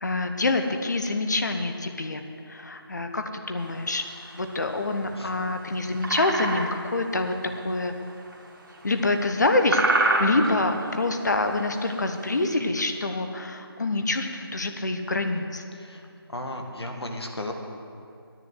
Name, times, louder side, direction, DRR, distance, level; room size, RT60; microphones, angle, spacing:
voice 1, 0.0-4.0 4.3-7.3 7.6-7.9 8.8-15.6, left 2 dB, 45° left, 6 dB, 1.1 m, -26 dB
sound 1, 3.6-12.4, right 2 dB, 50° right, 2.0 m, -28 dB
voice 2, 16.3-17.5, left 1 dB, 80° left, 3 dB, 2.0 m, -34 dB
10.5 x 9.9 x 8.0 m, 2.4 s
figure-of-eight pair, 170°, 13 cm